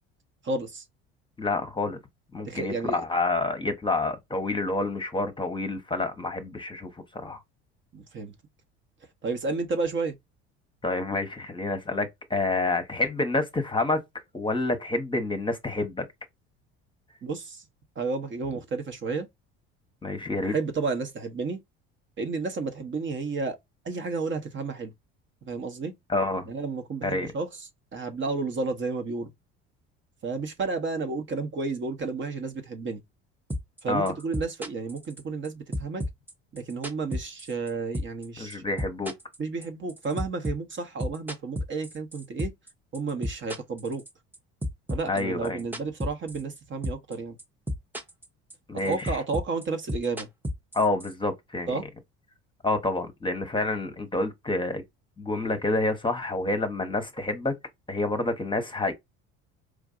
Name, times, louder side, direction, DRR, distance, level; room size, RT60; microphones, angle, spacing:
voice 1, 0.4-0.8 2.4-3.0 7.9-8.3 9.2-10.1 17.2-17.6 18.0-19.3 20.4-21.6 22.2-23.6 23.8-24.9 25.4-25.9 26.5-29.3 30.2-33.0 33.8-36.0 36.5-38.6 39.4-42.5 42.9-44.0 44.9-47.4 48.7-50.3 51.7-51.8, right 4 dB, 40° right, 1.0 m, -31 dB
voice 2, 1.4-2.0 2.3-7.4 10.8-14.0 14.3-16.0 20.0-20.5 26.1-26.5 27.0-27.3 33.9-34.1 38.4-39.1 45.1-45.6 48.7-49.2 50.7-51.7 52.6-54.8 55.2-57.5 57.9-58.9, left 2 dB, 15° left, 1.0 m, -28 dB
sound 1, 33.5-33.8 34.1-35.5 35.7-37.7 37.9-38.2 38.5-42.7 42.9-44.4 44.6-46.6 46.8-47.1 47.4-48.2 48.5-51.1, equal, 5° right, 0.8 m, -32 dB
4.8 x 2.5 x 2.4 m
supercardioid pair, 75°, 31 cm